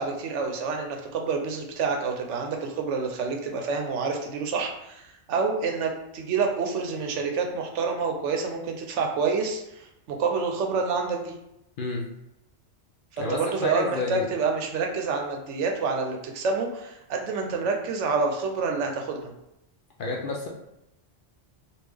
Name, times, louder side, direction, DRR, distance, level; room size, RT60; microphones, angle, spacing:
voice 1, 0.0-5.0 5.3-11.3 13.2-19.3, right 4 dB, 80° right, 3 dB, 0.9 m, -28 dB
voice 2, 13.2-14.3 20.0-20.5, left 3 dB, 60° left, -1 dB, 0.6 m, -30 dB
3.4 x 2.4 x 3.3 m, 0.86 s
omnidirectional pair, 1.2 m